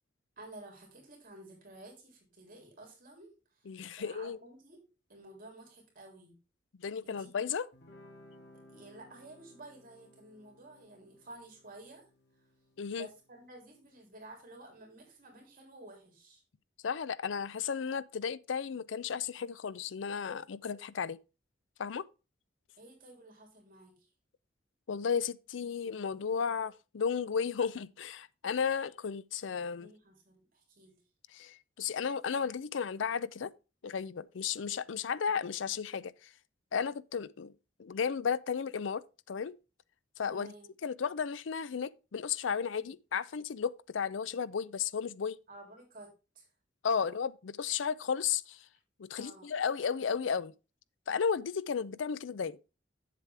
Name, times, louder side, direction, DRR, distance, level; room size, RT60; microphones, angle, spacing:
voice 1, 0.4-3.7 4.0-4.8 5.1-6.4 7.0-7.4 8.7-12.0 12.9-16.4 22.8-24.1 29.8-31.0 35.0-35.1 40.2-40.7 45.5-46.5 47.0-47.1 49.2-49.5, right 2 dB, 50° right, 3.4 m, -52 dB
voice 2, 3.7-4.4 6.8-7.7 12.8-13.1 16.8-21.2 21.8-22.1 24.9-29.9 31.3-33.5 33.8-36.3 36.7-37.5 37.8-39.0 39.3-39.5 40.2-40.5 40.8-45.4 46.8-48.6 49.0-50.5 51.1-52.6, left 6 dB, 85° left, 0.5 m, -34 dB
Guitar, 7.7-14.9, left 1 dB, 60° left, 2.1 m, -60 dB
8.2 x 7.5 x 3.4 m
head